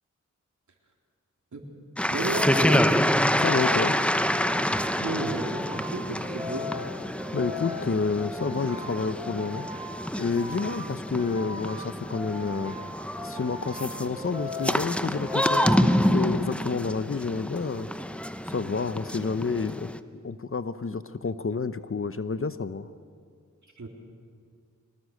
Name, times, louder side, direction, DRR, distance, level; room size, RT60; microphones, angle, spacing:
sound 1, 2.0-20.0, equal, 5° left, 0.9 m, -27 dB
sound 2, 2.1-16.7, left 3 dB, 15° right, 2.4 m, -38 dB
voice 1, 2.1-3.0 5.0-6.7 23.8-23.9, right 2 dB, 65° right, 1 dB, 3.5 m, -33 dB
voice 2, 3.4-4.0 7.3-9.7 10.2-12.7 13.2-17.9 18.5-22.9, left 4 dB, 45° left, 12 dB, 0.9 m, -29 dB
23.5 x 20.0 x 6.6 m, 2.2 s
cardioid pair, 50°, 31 cm